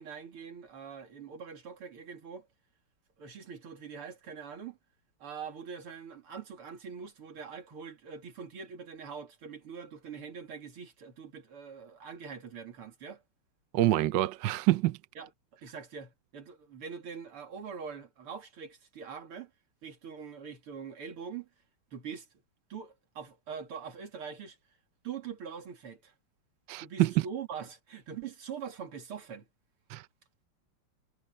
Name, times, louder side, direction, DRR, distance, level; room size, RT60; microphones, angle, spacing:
voice 1, 0.0-2.5 3.2-4.8 5.2-13.2 15.1-15.3 15.6-19.5 19.8-21.5 21.9-22.3 22.7-24.6 25.0-26.1 26.8-29.5, right 6 dB, 85° right, 3.4 m, -43 dB
voice 2, 13.7-15.0 26.7-27.1 29.9-30.0, right 15 dB, 70° right, 1.2 m, -26 dB
omnidirectional pair, 2.4 m